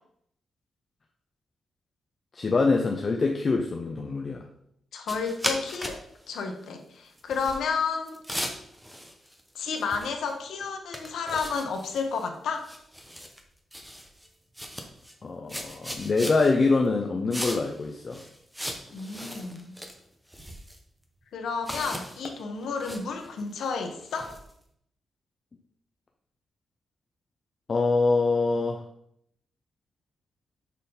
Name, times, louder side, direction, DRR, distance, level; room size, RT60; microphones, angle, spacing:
voice 1, 2.3-4.4 15.2-18.2 27.7-28.8, left 3 dB, 30° left, 2 dB, 0.6 m, -24 dB
voice 2, 4.9-8.2 9.5-12.7 18.9-19.7 21.3-24.4, left 5 dB, 85° left, 4 dB, 1.1 m, -31 dB
sound 1, 5.1-6.0 6.3-6.4 7.2-7.6 8.1-9.5 9.8-10.3 10.6-10.7 10.9-12.3 12.6-13.4 13.7-14.3 14.6-15.1 15.5-16.5 17.3-17.8 18.1-19.9 20.3-20.8 21.6-24.5, equal, 5° right, 0.7 m, -37 dB
6.5 x 3.9 x 5.3 m, 0.72 s
wide cardioid pair, 170°, 0 cm